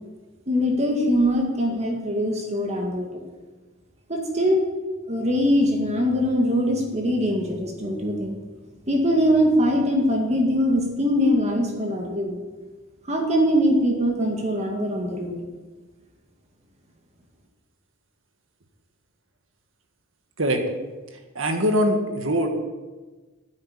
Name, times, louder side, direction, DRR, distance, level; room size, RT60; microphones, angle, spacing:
voice 1, 0.5-3.2 4.1-4.6 5.1-8.4 8.9-12.4 13.1-15.5, equal, 30° right, 1 dB, 1.9 m, -22 dB
voice 2, 21.4-22.5, equal, 65° right, 5 dB, 1.8 m, -22 dB
9.6 x 8.9 x 9.9 m, 1.3 s
head